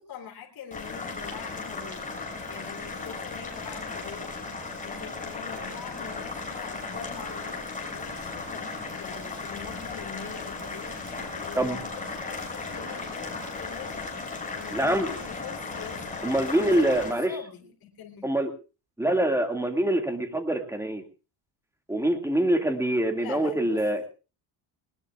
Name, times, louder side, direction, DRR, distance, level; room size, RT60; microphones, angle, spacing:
voice 1, 0.1-2.1 2.5-4.3 4.8-11.0 11.3-14.0 14.5-16.2 16.5-16.9 17.3-18.4 23.2-23.8, left 8 dB, 50° left, 1 dB, 3.7 m, -43 dB
Boiling, 0.7-17.1, left 3 dB, 15° left, 6.8 m, -36 dB
voice 2, 14.7-15.1 16.2-17.4 18.2-18.5 19.0-21.0 21.9-24.1, right 1 dB, 5° right, 4 dB, 2.1 m, -25 dB
21.0 x 19.5 x 2.4 m, 0.33 s
cardioid pair, 130°, 45 cm